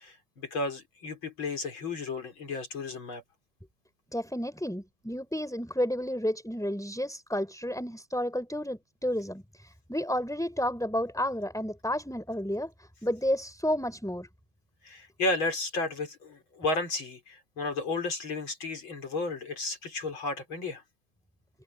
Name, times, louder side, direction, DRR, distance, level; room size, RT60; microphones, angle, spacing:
voice 1, 0.0-3.2 14.8-20.8, left 2 dB, 75° left, 5.2 m, -33 dB
voice 2, 4.1-14.3, equal, ahead, 4.0 m, -31 dB
omnidirectional pair, 2.2 m